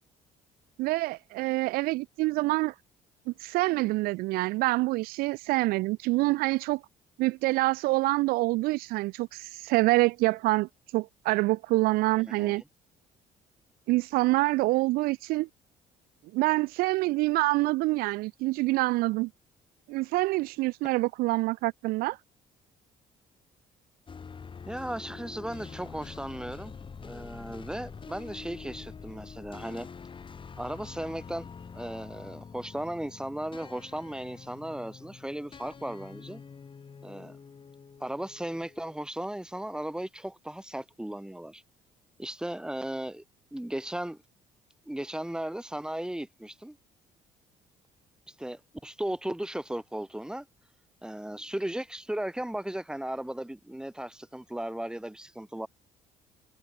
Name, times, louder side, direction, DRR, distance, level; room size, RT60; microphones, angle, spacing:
voice 1, 0.8-2.7 3.3-6.8 7.2-12.6 13.9-15.5 16.3-19.3 19.9-22.2, right 21 dB, 80° right, 0.4 m, -26 dB
sound 1, 24.1-39.0, left 5 dB, 35° left, 4.6 m, -46 dB
voice 2, 24.7-26.7 27.0-29.9 30.6-36.4 37.0-37.4 38.0-41.6 42.2-43.2 43.5-44.2 44.9-46.8 48.3-50.5 51.0-55.7, right 1 dB, 5° right, 5.6 m, -36 dB
cardioid pair, 95°, 15 cm